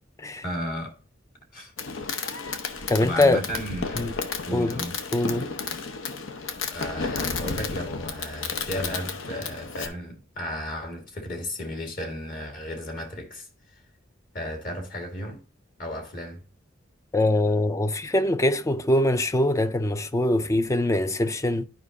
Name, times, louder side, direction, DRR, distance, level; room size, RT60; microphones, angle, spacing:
voice 1, 0.4-1.0 1.5-1.7 3.0-4.0 4.5-4.9 6.5-13.8 14.3-15.4 15.8-16.4, equal, 45° left, 1.7 m, -34 dB
Fireworks, 1.8-9.9, left 4 dB, 75° left, 0.8 m, -32 dB
voice 2, 2.9-3.4 4.0-4.1 4.5-4.8 5.1-5.5 17.1-21.7, left 1 dB, 15° left, 0.4 m, -23 dB
11.5 x 5.0 x 2.6 m
head